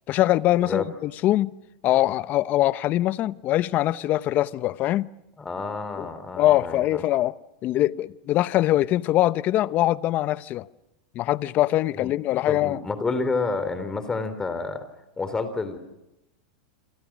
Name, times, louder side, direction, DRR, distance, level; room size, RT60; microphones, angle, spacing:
voice 1, 0.1-1.5 1.8-5.1 6.0-6.1 6.4-7.3 7.6-10.7 11.1-12.8, left 14 dB, 40° left, 0.8 m, -23 dB
voice 2, 5.4-7.0 11.9-12.1 12.5-14.8 15.2-15.8, left 3 dB, 15° left, 3.9 m, -29 dB
28.0 x 27.0 x 6.3 m
supercardioid pair, 125°, 5 cm